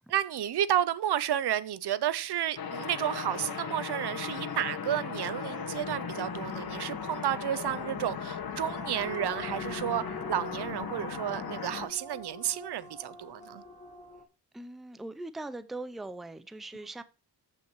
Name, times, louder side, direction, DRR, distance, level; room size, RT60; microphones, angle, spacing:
voice 1, 0.1-13.6, right 11 dB, 65° right, 0.7 m, -31 dB
sound 1, 2.6-11.9, left 6 dB, 60° left, 1.7 m, -37 dB
sound 2, 9.0-14.2, left 3 dB, 15° left, 2.0 m, -45 dB
voice 2, 14.5-17.0, right 2 dB, ahead, 0.5 m, -40 dB
14.5 x 5.7 x 3.1 m
wide cardioid pair, 135°, 42 cm